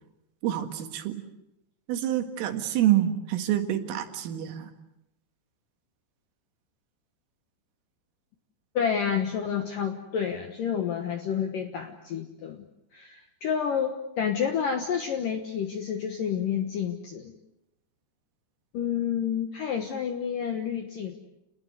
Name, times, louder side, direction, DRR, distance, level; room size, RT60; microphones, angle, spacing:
voice 1, 0.4-1.2 1.9-4.7, right 12 dB, 80° right, 7 dB, 4.3 m, -27 dB
voice 2, 8.7-12.6 12.9-17.3 18.7-21.2, left 7 dB, 70° left, 5 dB, 2.1 m, -29 dB
29.5 x 19.5 x 8.0 m, 0.86 s
omnidirectional pair, 5.8 m